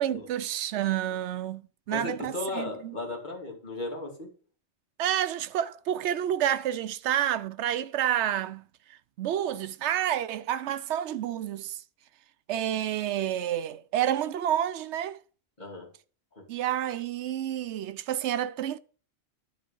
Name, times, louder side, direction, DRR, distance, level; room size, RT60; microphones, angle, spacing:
voice 1, 0.0-1.6 1.9-2.9 5.0-8.6 9.2-11.8 12.5-15.2 16.5-18.8, right 11 dB, 80° right, 0.9 m, -29 dB
voice 2, 1.9-4.3 15.6-15.9 16.3-16.4, left 2 dB, 40° left, 2.6 m, -35 dB
11.0 x 4.2 x 5.3 m
omnidirectional pair, 1.2 m